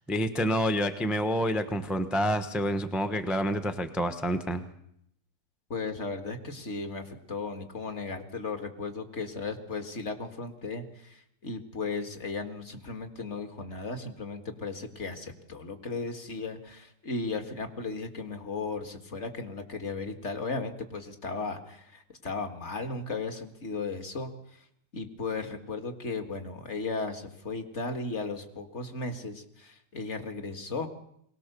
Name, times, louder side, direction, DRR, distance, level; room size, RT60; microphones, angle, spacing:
voice 1, 0.1-4.6, equal, ahead, 9 dB, 0.8 m, -28 dB
voice 2, 5.7-24.3 24.9-30.9, left 3 dB, 40° left, 6 dB, 2.0 m, -36 dB
22.0 x 18.5 x 6.8 m, 0.73 s
omnidirectional pair, 1.8 m